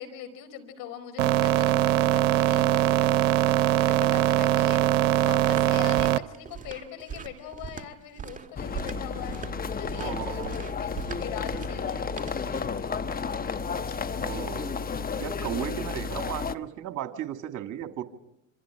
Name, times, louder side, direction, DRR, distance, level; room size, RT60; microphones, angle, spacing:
voice 1, 0.0-4.8 5.2-13.1, left 9 dB, 65° left, 8 dB, 4.8 m, -42 dB
sound 1, 1.2-6.2, right 14 dB, 85° right, 0.8 m, -22 dB
sound 2, 5.9-12.9, right 6 dB, 20° right, 1.6 m, -41 dB
sound 3, 8.6-16.5, left 5 dB, 25° left, 1.1 m, -32 dB
voice 2, 9.9-10.6 14.2-14.8 15.2-18.0, right 11 dB, 55° right, 6 dB, 2.3 m, -35 dB
27.0 x 25.5 x 4.9 m, 0.83 s
hypercardioid pair, 85°, 37 cm